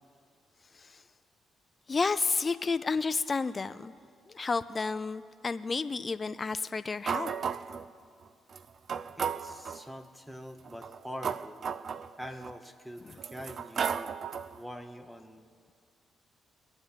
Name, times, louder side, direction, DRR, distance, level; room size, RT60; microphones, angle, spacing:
voice 1, 1.9-3.9 4.3-7.3 13.1-13.2, left 4 dB, 30° left, 12 dB, 0.3 m, -31 dB
sound 1, 7.1-7.9 8.5-8.6 8.9-9.8 10.7-12.5 13.1-14.6, right 7 dB, 50° right, 0.4 m, -34 dB
voice 2, 9.2-11.7 12.2-14.1 14.6-15.7, equal, 5° right, 7 dB, 0.8 m, -44 dB
21.5 x 7.9 x 7.2 m, 2.2 s
cardioid pair, 90°, 0 cm